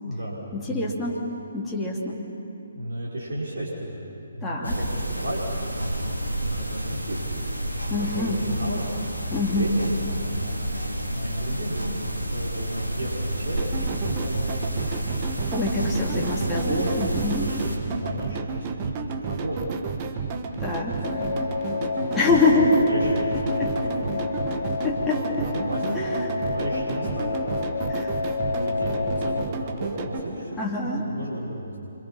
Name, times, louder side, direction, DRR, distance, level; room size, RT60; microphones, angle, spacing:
voice 1, 0.0-1.0 2.7-4.0 4.3-7.2 7.7-8.9 9.3-10.7 11.0-15.0 16.3-19.6 20.7-20.9 21.2-24.2 25.1-27.4 28.4-30.5 30.9-31.7, right 1 dB, 55° right, -6 dB, 5.6 m, -33 dB
voice 2, 0.5-1.2 1.5-2.2 4.4-4.8 7.9-8.4 9.3-9.7 15.5-17.4 20.6-20.9 22.2-22.7 23.6-23.7 24.8-25.2 25.9-26.3 27.9-28.1 30.6-31.0, left 3 dB, 10° left, -5 dB, 3.0 m, -25 dB
sound 1, 4.6-17.8, right 1 dB, 85° right, 4.1 m, -30 dB
sound 2, 13.6-30.2, right 5 dB, 25° right, 1.6 m, -32 dB
sound 3, 21.0-29.4, left 4 dB, 35° left, 2.4 m, -29 dB
28.5 x 25.5 x 5.8 m, 2.8 s
figure-of-eight pair, 140°, 0 cm